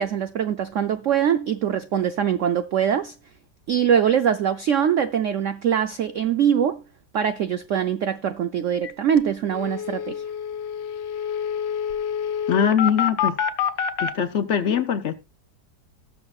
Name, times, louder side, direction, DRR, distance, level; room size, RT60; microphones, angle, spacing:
voice 1, 0.0-3.1 3.7-6.8 7.1-10.2, right 8 dB, 85° right, 0.6 m, -23 dB
sound 1, 8.8-8.9 9.2-9.3 9.5-14.1, left 8 dB, 75° left, 1.5 m, -27 dB
voice 2, 12.5-13.4 14.0-15.1, left 7 dB, 60° left, 0.8 m, -22 dB
19.0 x 6.5 x 2.4 m
omnidirectional pair, 2.0 m